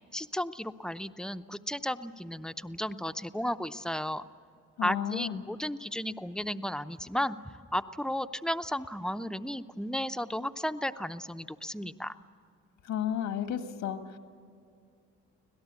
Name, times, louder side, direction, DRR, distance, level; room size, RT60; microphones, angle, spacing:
voice 1, 0.1-4.3 4.8-7.4 7.7-12.1, equal, ahead, 10 dB, 0.7 m, -34 dB
voice 2, 4.8-5.4 12.8-14.2, left 9 dB, 80° left, 7 dB, 1.8 m, -33 dB
25.5 x 17.5 x 8.2 m, 2.4 s
cardioid pair, 90°, 30 cm